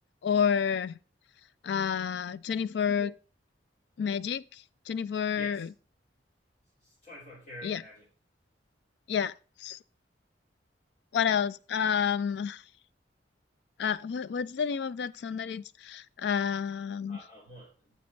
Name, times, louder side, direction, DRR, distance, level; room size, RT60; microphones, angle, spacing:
voice 1, 0.2-1.0 1.6-3.1 4.0-5.7 7.6-7.8 9.1-9.3 9.6-9.8 11.1-12.6 13.8-17.2, left 7 dB, 65° left, 0.3 m, -30 dB
voice 2, 5.3-5.7 6.8-8.0 17.1-17.9, left 1 dB, 40° left, 4.0 m, -47 dB
9.3 x 7.1 x 3.2 m
head